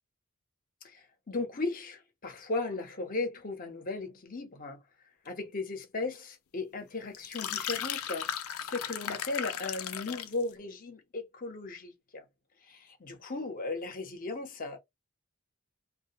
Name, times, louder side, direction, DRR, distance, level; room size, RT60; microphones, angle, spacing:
voice 1, 0.9-4.8 5.2-8.3 8.6-12.2 12.7-14.8, left 3 dB, 40° left, 0.8 m, -36 dB
sound 1, 7.1-10.4, left 9 dB, 75° left, 0.4 m, -36 dB
2.3 x 2.1 x 2.7 m
head